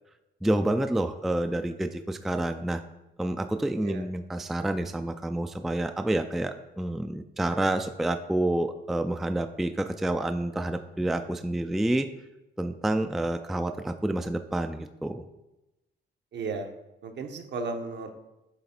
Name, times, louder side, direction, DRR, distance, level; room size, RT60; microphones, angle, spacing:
voice 1, 0.4-2.8 3.2-12.1 12.6-15.2, right 1 dB, ahead, 7 dB, 0.3 m, -28 dB
voice 2, 16.3-16.7 17.0-18.1, right 4 dB, 60° right, 5 dB, 0.9 m, -34 dB
8.0 x 3.2 x 4.3 m, 0.95 s
cardioid pair, 90°, 20 cm